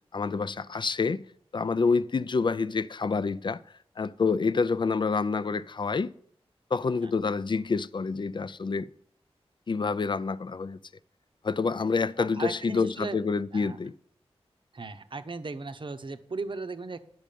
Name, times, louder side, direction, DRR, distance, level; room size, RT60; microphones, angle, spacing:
voice 1, 0.1-3.6 4.0-6.1 6.7-8.9 9.7-10.8 11.4-13.9, left 4 dB, 50° left, 0.4 m, -27 dB
voice 2, 12.2-13.2 13.5-13.8 14.7-17.0, right 3 dB, 50° right, 0.8 m, -37 dB
10.5 x 6.2 x 6.8 m
wide cardioid pair, 85°, 11 cm